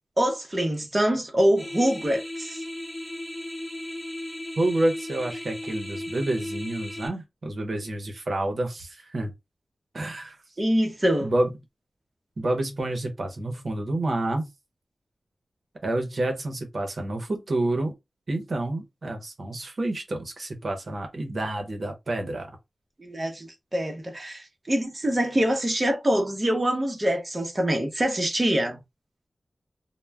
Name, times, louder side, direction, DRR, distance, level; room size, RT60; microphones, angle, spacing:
voice 1, 0.2-2.6 10.6-11.3 23.0-28.8, equal, 30° right, 0.7 m, -25 dB
sound 1, 1.6-7.1, left 1 dB, 15° left, 0.8 m, -36 dB
voice 2, 4.6-9.3 9.9-10.4 11.2-11.5 12.4-14.5 15.8-17.9 18.3-22.5, right 1 dB, 65° right, 0.7 m, -28 dB
2.2 x 2.1 x 3.3 m
wide cardioid pair, 65°, 0 cm